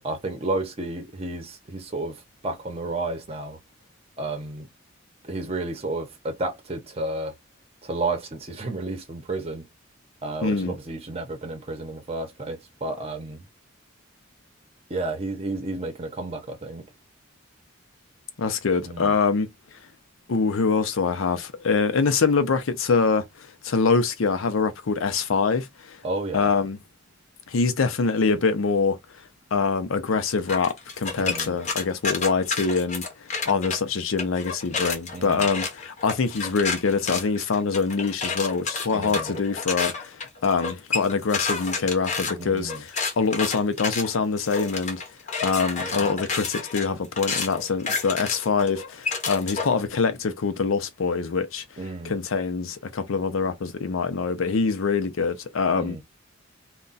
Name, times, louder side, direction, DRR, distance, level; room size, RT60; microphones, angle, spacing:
voice 1, 0.0-3.6 4.2-4.7 5.2-7.3 7.8-9.7 10.2-13.4 14.9-16.8 18.8-19.1 26.0-26.5 31.2-31.6 35.1-35.5 38.9-39.4 42.4-42.8 45.8-46.1 51.8-52.2 55.7-56.0, right 2 dB, 30° right, 0.7 m, -32 dB
voice 2, 10.4-10.7 18.4-19.5 20.3-26.0 26.3-26.8 27.5-29.0 29.5-45.0 45.4-51.6 52.0-56.0, left 4 dB, 85° left, 0.6 m, -24 dB
sound 1, 30.5-33.8 34.2-49.8, left 4 dB, 35° left, 0.7 m, -30 dB
2.3 x 2.1 x 3.9 m
head